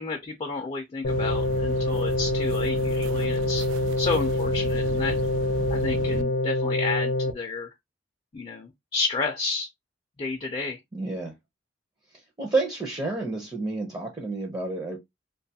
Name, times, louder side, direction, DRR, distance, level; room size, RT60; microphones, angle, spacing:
voice 1, 0.0-3.6 4.0-5.2 5.7-7.7 8.3-9.7 10.2-10.8, left 4 dB, 30° left, 0.4 m, -31 dB
sound 1, 1.0-7.3, left 2 dB, 80° left, 0.6 m, -26 dB
sound 2, 1.1-6.2, right 5 dB, 85° right, 0.3 m, -35 dB
voice 2, 10.9-11.3 12.4-15.0, right 3 dB, 20° right, 0.5 m, -29 dB
2.5 x 2.3 x 2.7 m
head